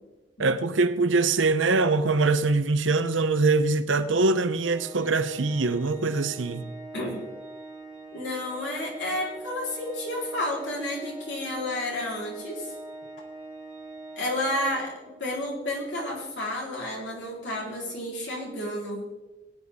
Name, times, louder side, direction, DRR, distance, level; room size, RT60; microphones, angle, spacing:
voice 1, 0.4-6.6, right 3 dB, 85° right, 0.8 m, -23 dB
Organ, 4.6-15.4, right 2 dB, 10° right, 2.4 m, -43 dB
voice 2, 8.1-12.7 14.2-14.9 15.2-19.0, left 1 dB, 70° left, 4.1 m, -31 dB
20.0 x 8.9 x 3.7 m
head